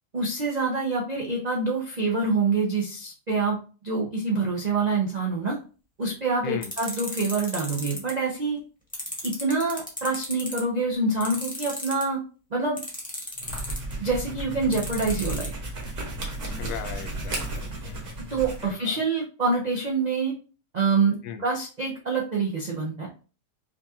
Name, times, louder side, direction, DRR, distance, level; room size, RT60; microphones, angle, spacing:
voice 1, 0.1-3.6 3.8-5.6 6.0-8.6 9.2-12.2 12.5-12.8 14.0-15.5 18.3-20.3 20.7-21.1 21.4-23.1, right 3 dB, 85° right, -2 dB, 0.3 m, -26 dB
sound 1, 6.6-8.1 8.9-10.6 11.2-12.0 12.8-13.9 14.7-15.5, left 1 dB, 5° left, 0.9 m, -34 dB
sound 2, 13.3-18.7, right 2 dB, 50° right, 1.4 m, -34 dB
voice 2, 16.6-18.0 18.6-19.0 21.2-21.4, left 7 dB, 75° left, 7 dB, 1.1 m, -38 dB
5.0 x 2.3 x 2.8 m, 0.36 s
omnidirectional pair, 1.8 m